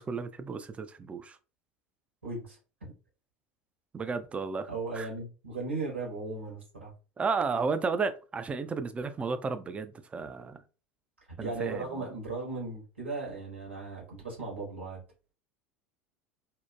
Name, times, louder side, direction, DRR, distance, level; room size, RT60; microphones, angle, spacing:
voice 1, 0.0-1.4 3.9-4.7 4.9-5.1 7.2-10.6 11.4-11.9, right 4 dB, 20° right, 0.3 m, -33 dB
voice 2, 2.2-2.6 4.7-6.9 11.4-15.0, right 3 dB, 85° right, 1.2 m, -37 dB
2.8 x 2.1 x 2.3 m
figure-of-eight pair, 75°, 6 cm